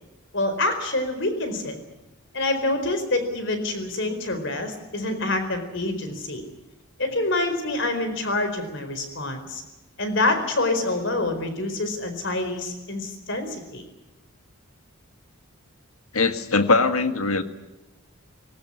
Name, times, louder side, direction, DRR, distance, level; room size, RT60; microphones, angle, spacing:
voice 1, 0.3-1.8 2.3-6.4 7.0-9.6 10.0-13.8, left 2 dB, 55° left, 8 dB, 4.5 m, -26 dB
voice 2, 16.1-17.4, left 3 dB, 80° left, 9 dB, 1.8 m, -21 dB
20.0 x 18.5 x 10.0 m, 1.0 s
head